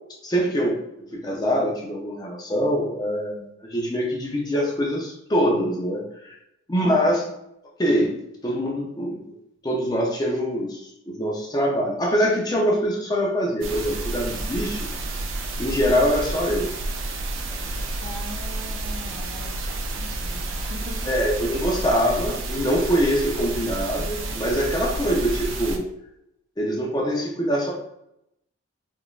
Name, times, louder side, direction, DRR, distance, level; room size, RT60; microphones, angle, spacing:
voice 1, 0.2-0.8 1.1-6.4 6.7-7.2 7.8-8.2 8.4-9.2 9.6-14.9 15.6-16.7 21.1-25.8 26.6-27.7, equal, 20° left, -2 dB, 0.5 m, -24 dB
voice 2, 6.7-7.3 18.0-21.1, left 1 dB, 45° right, -3 dB, 0.8 m, -40 dB
sound 1, 13.6-25.8, right 2 dB, 90° right, 0.4 m, -30 dB
3.7 x 2.4 x 2.4 m, 0.79 s
head